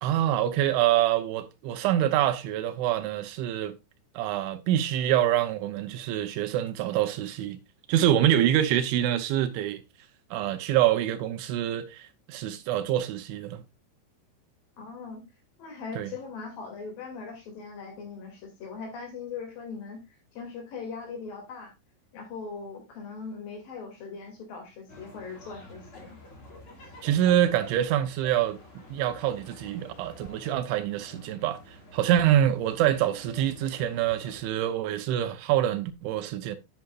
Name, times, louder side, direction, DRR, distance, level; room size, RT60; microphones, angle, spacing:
voice 1, 0.0-3.8 4.2-7.6 7.9-9.8 10.3-13.6 16.0-16.1 27.0-28.6 28.9-36.6, right 11 dB, 85° right, 3.0 m, -26 dB
voice 2, 14.8-15.2 15.6-21.7 22.1-26.2, left 5 dB, 50° left, 4.0 m, -40 dB
sound 1, 24.9-34.5, left 2 dB, 35° left, 2.6 m, -49 dB
10.0 x 9.4 x 2.5 m
omnidirectional pair, 5.6 m